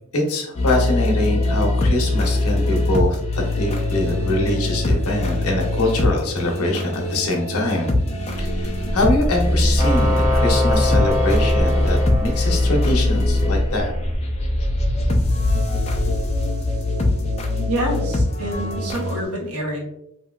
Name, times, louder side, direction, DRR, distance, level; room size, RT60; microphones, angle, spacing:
voice 1, 0.1-7.9 8.2-13.9, left 1 dB, 75° left, 1 dB, 0.7 m, -24 dB
sound 1, 0.5-19.2, left 1 dB, 30° left, 0.3 m, -22 dB
sound 2, 8.3-14.2, equal, 50° right, 0.5 m, -27 dB
sound 3, 9.8-13.5, left 2 dB, 10° right, 0.8 m, -25 dB
voice 2, 17.7-19.8, equal, 80° right, -1 dB, 0.9 m, -27 dB
2.9 x 2.7 x 2.3 m, 0.81 s
head